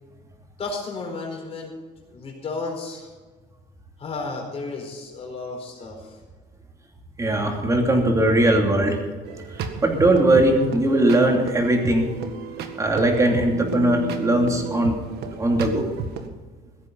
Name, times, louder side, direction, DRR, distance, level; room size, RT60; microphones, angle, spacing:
voice 1, 0.6-1.7 2.1-3.1 4.0-6.2, left 3 dB, 35° left, 1 dB, 4.5 m, -33 dB
voice 2, 7.2-9.0 9.8-12.1 12.8-14.9 15.4-15.9, right 1 dB, 20° right, 2 dB, 2.9 m, -19 dB
sound 1, 9.2-16.3, right 5 dB, 75° right, 1.7 m, -33 dB
16.5 x 14.0 x 4.1 m, 1.3 s
cardioid pair, 150°, 17 cm